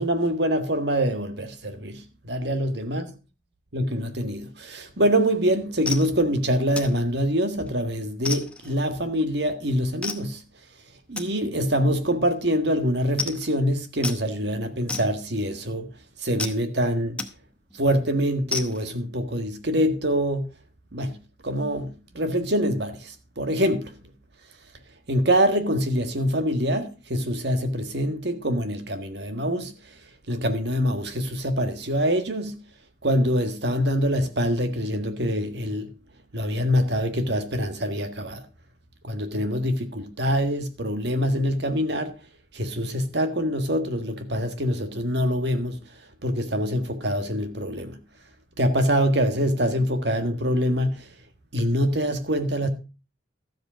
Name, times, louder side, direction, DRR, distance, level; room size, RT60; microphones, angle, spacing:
voice 1, 0.0-3.1 3.7-10.4 11.1-15.9 16.2-17.2 17.7-20.6 20.9-23.9 25.1-30.0 30.3-32.6 33.0-35.9 36.3-38.4 39.0-42.1 42.5-45.8 46.2-48.0 48.6-51.1 51.5-52.7, equal, 60° right, 1.6 m, -25 dB
sound 1, 5.3-5.4 5.9-6.1 6.8-7.0 7.4-7.7 8.3-8.8 10.0-10.3 11.2-11.3 12.0-12.1 12.4-12.5 12.8-12.9 13.2-13.5 14.0-14.2 14.9-15.5 16.4-16.6 17.2-17.3 17.7-17.8 18.5-18.9, left 3 dB, 5° left, 0.9 m, -32 dB
13.0 x 7.6 x 5.0 m
head